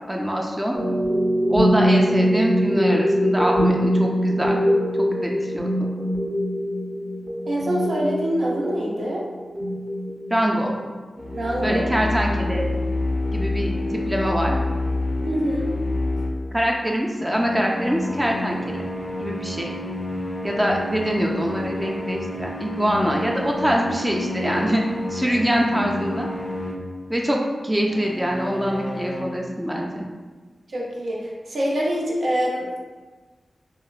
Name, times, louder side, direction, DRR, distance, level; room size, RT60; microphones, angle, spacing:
voice 1, 0.1-0.8 1.5-4.6 5.0-5.9 10.3-10.7 11.6-12.6 13.3-14.6 16.5-18.8 19.2-19.7 20.4-24.8 25.1-26.3 27.1-27.4 27.6-30.1, equal, 15° right, -1 dB, 0.4 m, -24 dB
sound 1, 0.7-14.2, equal, 40° right, 0.8 m, -24 dB
voice 2, 7.5-9.2 11.3-11.8 15.2-15.7 24.4-24.5 30.7-32.7, equal, 75° right, -4 dB, 0.5 m, -25 dB
sound 2, 11.2-16.5 17.2-27.0 27.8-29.2, left 2 dB, 55° left, 0.3 m, -29 dB
3.0 x 2.1 x 2.3 m, 1.3 s
cardioid pair, 40°, 0 cm